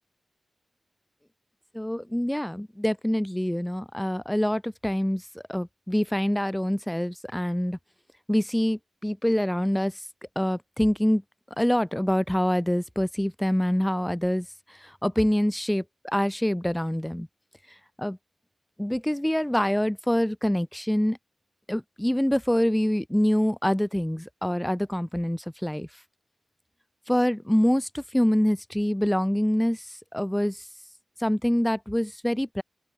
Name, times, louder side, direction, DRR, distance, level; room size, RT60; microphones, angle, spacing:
voice 1, 1.7-5.2 5.5-7.8 8.3-9.9 10.3-11.2 11.6-14.5 15.0-15.8 16.1-17.3 18.0-18.2 18.8-21.2 21.7-25.9 27.1-29.8 30.1-30.6 31.2-32.6, equal, 5° left, 3.2 m, -25 dB
open air
wide cardioid pair, 130°, 0 cm